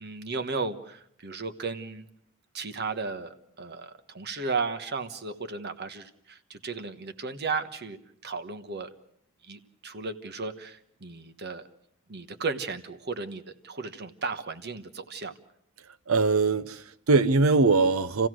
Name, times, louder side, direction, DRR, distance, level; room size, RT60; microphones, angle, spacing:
voice 1, 0.0-2.0 2.5-8.9 9.4-11.7 12.1-15.3, right 4 dB, 50° right, 1.3 m, -35 dB
voice 2, 16.1-18.3, right 3 dB, 85° right, 0.8 m, -22 dB
28.5 x 16.0 x 6.3 m
head